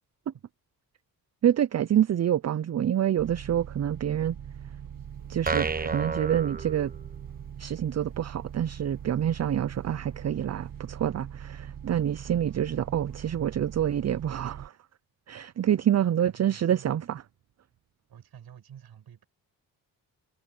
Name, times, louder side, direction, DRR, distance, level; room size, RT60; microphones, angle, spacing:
voice 1, 1.4-4.4 5.3-6.9 7.6-14.7 15.3-17.2, right 10 dB, 45° right, 0.6 m, -27 dB
sound 1, 3.2-14.7, right 8 dB, 60° right, 1.6 m, -42 dB
sound 2, 5.5-7.4, right 4 dB, 25° right, 0.9 m, -31 dB
voice 2, 16.0-17.1 18.1-19.3, right 9 dB, 80° right, 7.1 m, -50 dB
cardioid pair, 75°, 37 cm